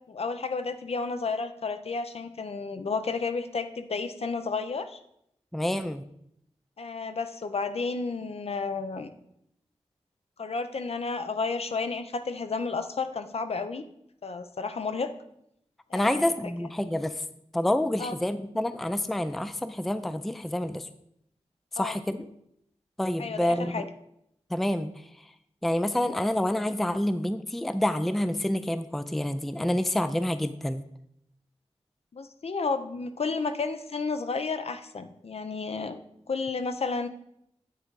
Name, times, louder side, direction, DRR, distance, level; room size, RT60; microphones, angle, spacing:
voice 1, 0.1-5.0 6.8-9.1 10.4-13.8 14.2-15.1 15.9-16.2 18.0-18.2 21.8-22.0 23.2-23.8 32.1-36.0 36.3-37.1, left 4 dB, 60° left, 9 dB, 0.6 m, -32 dB
voice 2, 5.5-6.0 15.9-17.1 17.5-20.9 21.8-22.2 23.0-23.8 24.5-24.9 25.6-30.8, left 1 dB, ahead, 11 dB, 0.3 m, -28 dB
9.1 x 3.7 x 4.6 m, 0.75 s
wide cardioid pair, 90°, 12 cm